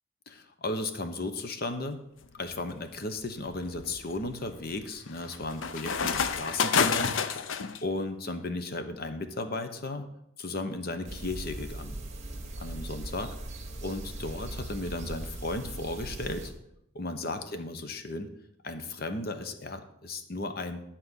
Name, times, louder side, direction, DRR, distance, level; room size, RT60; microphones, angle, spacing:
voice 1, 0.3-2.0 2.4-7.1 7.8-10.1 10.4-11.9 12.6-13.3 13.8-16.5 16.9-18.3 18.6-20.8, left 2 dB, 45° left, 8 dB, 1.0 m, -35 dB
sound 1, 2.2-2.6 3.2-7.8, left 6 dB, 70° left, 0.6 m, -29 dB
sound 2, 11.0-16.5, right 1 dB, 35° right, 1.6 m, -39 dB
11.5 x 4.2 x 8.0 m, 0.80 s
head